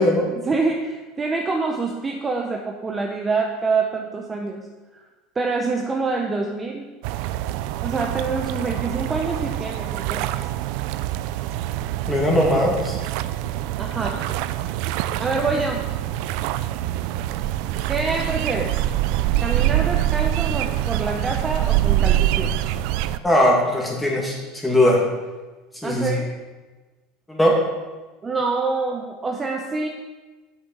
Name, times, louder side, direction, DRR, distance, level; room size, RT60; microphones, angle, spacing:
voice 1, 0.4-4.7 4.9-5.0 5.3-6.9 7.8-10.3 13.8-14.3 15.2-15.8 17.9-18.7 19.4-22.5 25.8-26.3 28.2-29.9, right 3 dB, 20° right, 1 dB, 0.8 m, -26 dB
sound 1, 7.0-23.2, right 13 dB, 65° right, 0.4 m, -25 dB
voice 2, 12.1-13.0 23.2-24.4 24.6-25.0 25.8-26.2 27.3-27.5, left 1 dB, 5° left, -2 dB, 2.3 m, -19 dB
8.5 x 6.3 x 6.0 m, 1.3 s
supercardioid pair, 130°, 0 cm